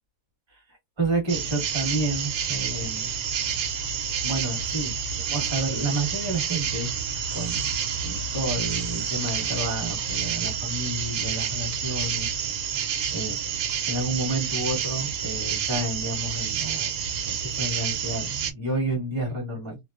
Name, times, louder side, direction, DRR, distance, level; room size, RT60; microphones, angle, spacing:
voice 1, 0.5-3.1 4.2-6.9 7.3-7.7 8.0-12.3 12.6-13.4 13.9-16.9 17.3-19.8, right 2 dB, 20° right, 1.0 m, -30 dB
sound 1, 1.3-18.5, right 7 dB, 75° right, 1.0 m, -29 dB
2.6 x 2.0 x 2.3 m
omnidirectional pair, 1.6 m